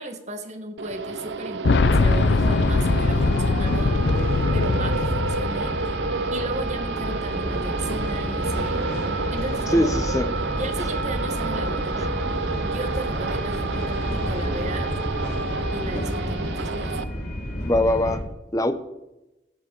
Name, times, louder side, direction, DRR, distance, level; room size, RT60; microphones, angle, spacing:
voice 1, 0.0-4.3 4.5-5.7 6.3-8.8 9.3-10.0 10.6-12.1 12.6-14.9 15.7-16.9, right 2 dB, 40° right, 6 dB, 1.4 m, -35 dB
sound 1, 0.8-17.0, right 4 dB, 85° right, 0.7 m, -30 dB
Boom, 1.6-6.4 6.6-6.7 7.9-8.0, left 3 dB, 80° left, 0.5 m, -22 dB
sound 2, 1.7-18.2, equal, 60° left, 3.9 m, -30 dB
voice 2, 9.7-10.3 17.7-18.2 18.5-18.7, left 1 dB, 20° left, 10 dB, 0.8 m, -21 dB
17.0 x 7.3 x 4.6 m, 0.96 s
head